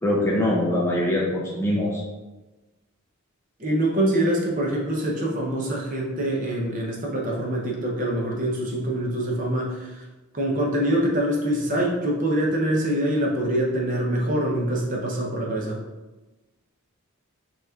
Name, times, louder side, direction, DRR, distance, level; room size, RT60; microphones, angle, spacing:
voice 1, 0.0-2.0, left 1 dB, 10° left, -3 dB, 0.4 m, -23 dB
voice 2, 3.6-10.0 10.3-15.8, right 1 dB, 35° right, -2 dB, 0.7 m, -24 dB
5.6 x 3.0 x 2.4 m, 1.1 s
head